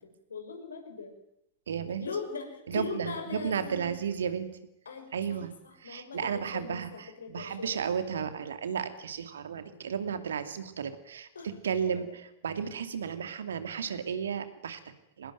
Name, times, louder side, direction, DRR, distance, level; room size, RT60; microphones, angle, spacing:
voice 1, 0.0-1.1 2.0-3.9 4.9-5.4 5.8-7.8 11.3-11.5, left 4 dB, 70° left, 5 dB, 6.2 m, -40 dB
voice 2, 1.7-2.1 2.7-4.5 5.1-15.3, right 7 dB, 65° right, 9 dB, 2.6 m, -34 dB
25.0 x 20.0 x 9.3 m, 0.81 s
figure-of-eight pair, 90°, 0 cm